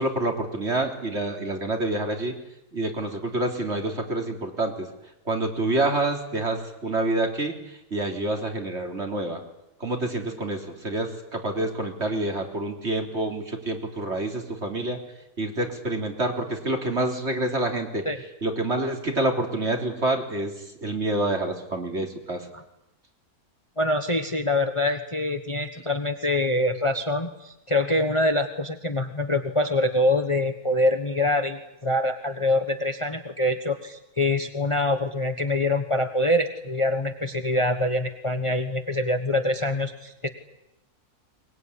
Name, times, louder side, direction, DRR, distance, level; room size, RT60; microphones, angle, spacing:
voice 1, 0.0-2.3 2.7-4.9 5.3-7.5 7.9-9.4 9.8-15.0 15.4-18.0 18.4-20.5 20.8-22.5, right 2 dB, 45° right, 3 dB, 3.8 m, -27 dB
voice 2, 23.8-40.3, left 1 dB, 20° left, 7 dB, 1.3 m, -25 dB
23.0 x 21.5 x 9.9 m, 0.88 s
omnidirectional pair, 1.6 m